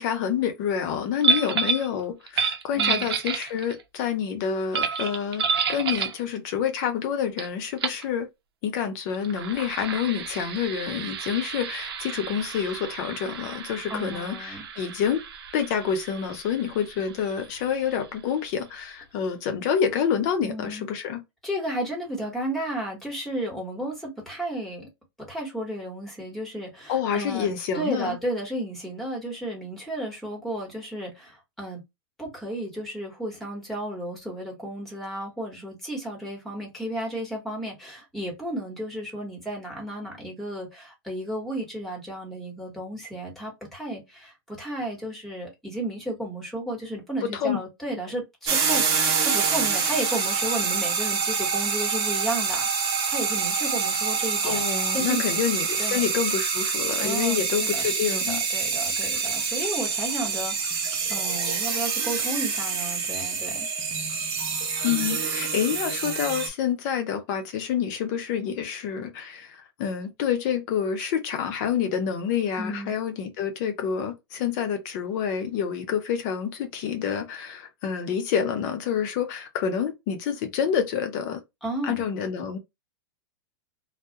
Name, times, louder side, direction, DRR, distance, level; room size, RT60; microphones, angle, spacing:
voice 1, 0.0-8.3 8.6-15.2 15.5-21.2 26.9-28.2 47.2-47.6 54.4-58.4 64.8-81.4 81.8-82.6, left 8 dB, 45° left, 0.6 m, -28 dB
sound 1, 1.2-1.9 2.3-3.8 4.7-6.2 7.4-7.5 7.8-8.0 9.1-18.4, right 6 dB, 85° right, 0.6 m, -30 dB
voice 2, 2.7-3.1 13.9-14.7 20.4-20.8 21.4-24.9 25.3-31.8 32.2-52.6 53.1-55.2 55.8-56.0 57.0-60.8 61.1-63.7 72.6-72.9 81.6-82.1, right 1 dB, ahead, 1.0 m, -33 dB
sound 2, 48.5-66.5, right 5 dB, 30° right, 0.8 m, -26 dB
2.3 x 2.0 x 2.6 m
supercardioid pair, 145°, 13 cm